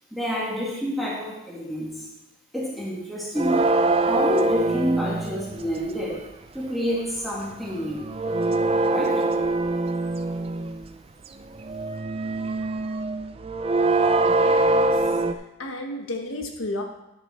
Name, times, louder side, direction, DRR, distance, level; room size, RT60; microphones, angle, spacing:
voice 1, 0.1-2.0 2.5-3.7 4.0-6.3 6.5-8.1 8.9-9.2, equal, ahead, -6 dB, 1.9 m, -28 dB
sound 1, 3.4-5.8 7.7-10.9 11.5-15.3, right 2 dB, 30° right, 0.3 m, -23 dB
voice 2, 14.2-15.0 15.3-16.8, left 1 dB, 90° left, 3 dB, 1.2 m, -33 dB
9.9 x 6.7 x 4.3 m, 0.93 s
head